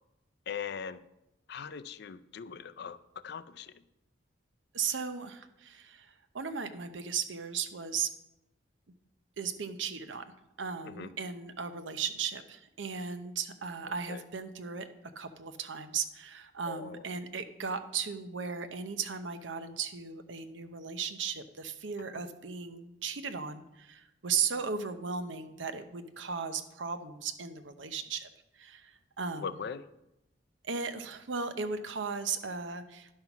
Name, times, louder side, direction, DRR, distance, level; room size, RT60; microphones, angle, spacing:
voice 1, 0.5-1.0 1.5-3.0 3.2-3.7 10.9-11.1 14.1-14.2 16.7-17.0 29.3-29.8, left 6 dB, 60° left, 13 dB, 0.4 m, -40 dB
voice 2, 4.7-8.1 9.4-10.2 10.6-14.9 15.2-28.3 28.6-29.5 30.6-33.1, right 6 dB, 85° right, 10 dB, 0.8 m, -36 dB
10.5 x 5.6 x 5.9 m, 0.90 s
head